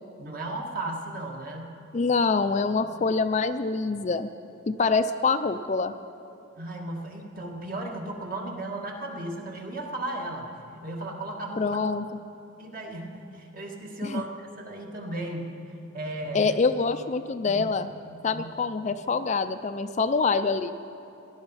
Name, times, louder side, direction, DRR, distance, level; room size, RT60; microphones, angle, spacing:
voice 1, 0.2-1.7 2.9-3.0 6.6-11.8 12.6-16.5 17.5-17.7 18.4-18.5, right 2 dB, 45° right, 0 dB, 1.9 m, -35 dB
voice 2, 1.9-4.3 4.7-5.9 11.6-12.1 14.0-14.2 16.3-17.9 18.2-20.7, left 4 dB, 35° left, 10 dB, 0.4 m, -25 dB
18.0 x 12.0 x 5.6 m, 3.0 s
head